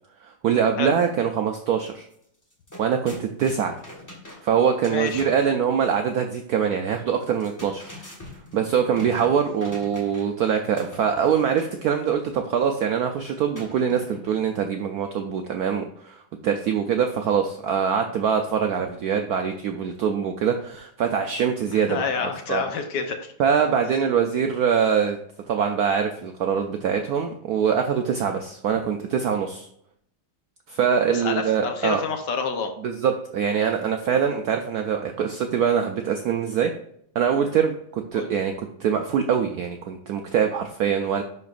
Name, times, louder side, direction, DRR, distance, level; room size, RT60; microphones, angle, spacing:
voice 1, 0.2-2.1 2.8-3.8 4.4-7.9 8.5-22.0 22.5-22.6 23.4-25.2 25.5-29.7 30.7-32.0 32.8-36.7 37.1-41.2, right 7 dB, 80° right, 5 dB, 0.8 m, -23 dB
sound 1, 2.0-2.1 2.4-5.5 7.2-10.4 10.8-11.8 13.5-14.4, left 2 dB, 10° left, 1.1 m, -42 dB
voice 2, 4.9-5.3 21.7-23.3 31.1-32.7 38.1-38.3, left 5 dB, 65° left, 6 dB, 1.3 m, -28 dB
11.0 x 4.3 x 2.4 m, 0.68 s
omnidirectional pair, 2.2 m